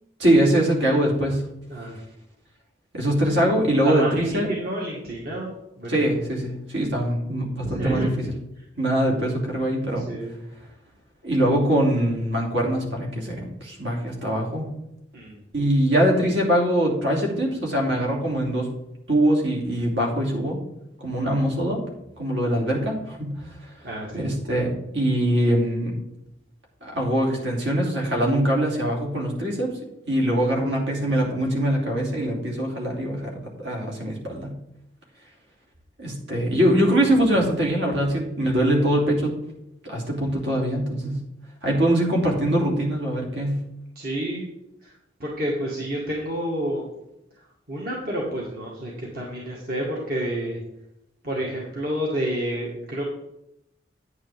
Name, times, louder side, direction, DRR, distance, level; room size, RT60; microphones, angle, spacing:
voice 1, 0.2-1.4 2.9-4.5 5.9-8.3 8.8-10.1 11.2-14.7 15.5-18.7 19.1-20.6 21.0-21.8 22.2-23.3 24.1-25.9 26.8-29.7 30.1-34.5 36.0-39.3 39.8-41.2 41.6-43.6, right 1 dB, 75° right, -1 dB, 3.0 m, -23 dB
voice 2, 3.8-6.1 7.6-8.1 10.0-10.3 15.1-15.4 23.8-24.3 44.0-44.5 44.8-44.9 45.2-46.8 47.7-50.6 51.2-53.1, right 1 dB, 55° right, -4 dB, 1.9 m, -29 dB
9.7 x 8.9 x 3.6 m, 0.83 s
head